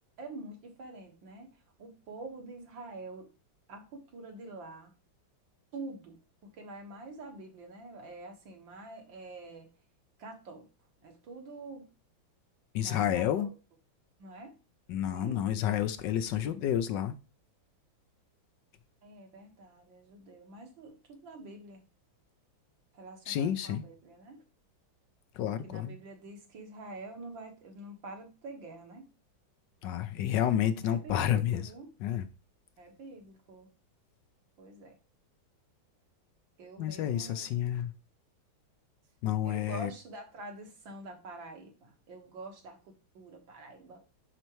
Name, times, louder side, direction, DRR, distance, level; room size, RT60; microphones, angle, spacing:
voice 1, 0.2-1.5 1.8-3.3 3.7-4.9 5.7-9.7 10.2-10.7 11.0-11.9 12.8-13.5 14.2-14.6 15.1-15.4 19.0-21.8 22.9-24.4 25.6-29.1 30.8-31.9 32.8-33.7 34.6-35.0 36.6-37.5 39.4-44.0, right 2 dB, 75° right, 2.3 m, -46 dB
voice 2, 12.7-13.5 14.9-17.1 23.3-23.8 25.4-25.9 29.8-31.6 32.0-32.3 36.8-37.9 39.2-39.9, left 10 dB, 70° left, 1.2 m, -30 dB
11.0 x 4.5 x 3.0 m
omnidirectional pair, 2.1 m